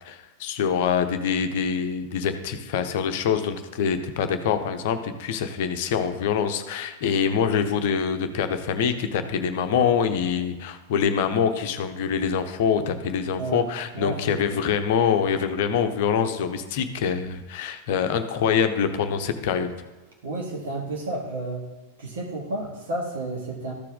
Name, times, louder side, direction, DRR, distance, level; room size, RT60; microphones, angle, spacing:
voice 1, 0.0-19.7, left 7 dB, 50° left, 8 dB, 0.8 m, -25 dB
voice 2, 13.9-14.6 20.2-21.7 22.0-23.7, right 2 dB, 60° right, -1 dB, 1.7 m, -31 dB
13.5 x 4.6 x 3.6 m, 1.2 s
figure-of-eight pair, 90°, 0 cm